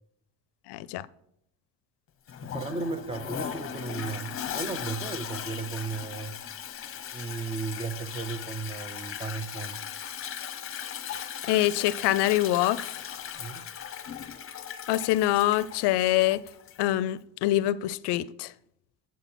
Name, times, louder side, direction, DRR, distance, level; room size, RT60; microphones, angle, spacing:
voice 1, 0.7-1.1 11.1-13.0 14.9-16.5 16.8-18.5, left 15 dB, 70° left, 0.5 m, -25 dB
Toilet flush, 2.3-16.9, left 9 dB, 30° left, 0.7 m, -38 dB
voice 2, 2.4-6.4 7.1-9.9 13.4-13.7, right 4 dB, 15° right, 0.4 m, -35 dB
8.4 x 7.5 x 4.2 m
cardioid pair, 150°, 42 cm